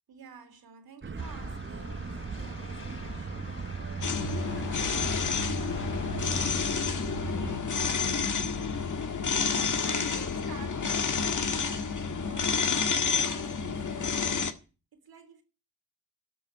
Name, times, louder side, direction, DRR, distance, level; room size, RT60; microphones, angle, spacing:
voice 1, 0.1-3.5 9.8-14.4 15.1-15.4, right 6 dB, 85° right, 3.6 m, -50 dB
sound 1, 1.0-7.6, right 5 dB, 30° right, 1.0 m, -38 dB
sound 2, 1.2-6.3, left 2 dB, 30° left, 5.3 m, -44 dB
sound 3, 4.0-14.5, left 5 dB, 55° left, 1.8 m, -29 dB
12.5 x 7.3 x 8.9 m
cardioid pair, 75°, 36 cm